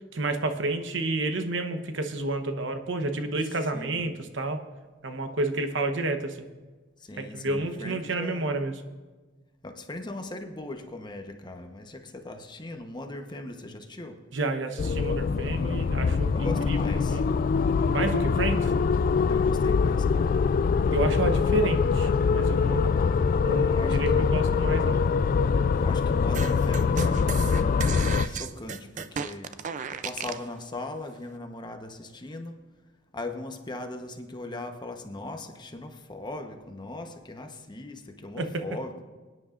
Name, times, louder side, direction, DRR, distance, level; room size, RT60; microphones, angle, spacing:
voice 1, 0.1-4.6 5.0-6.5 7.2-8.7 14.3-17.2 17.8-18.7 20.9-23.0 23.4-25.0 38.4-38.6, right 2 dB, 75° right, 7 dB, 1.0 m, -30 dB
voice 2, 3.7-4.1 7.0-8.5 9.6-14.2 16.3-17.2 17.9-18.5 19.3-20.4 23.7-24.4 25.8-29.6 29.9-32.6 33.1-39.0, left 2 dB, 25° left, 5 dB, 1.0 m, -39 dB
sound 1, 14.8-28.3, left 5 dB, 45° left, 0.3 m, -24 dB
sound 2, 26.3-30.5, right 5 dB, 40° right, 0.4 m, -34 dB
25.0 x 9.7 x 2.5 m, 1.3 s
head